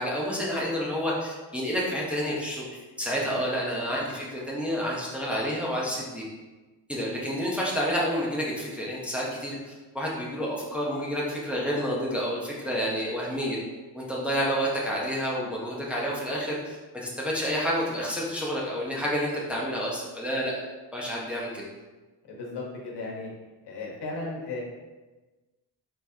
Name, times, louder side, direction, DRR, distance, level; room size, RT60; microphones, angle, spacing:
voice 1, 0.0-2.7 3.0-6.2 6.9-13.6 13.9-16.8 17.0-20.5 20.9-21.6, equal, 5° right, -5 dB, 0.8 m, -29 dB
voice 2, 22.3-23.3 23.6-24.6, left 3 dB, 75° left, -2 dB, 1.2 m, -35 dB
4.4 x 4.3 x 2.7 m, 1.2 s
cardioid pair, 145°, 41 cm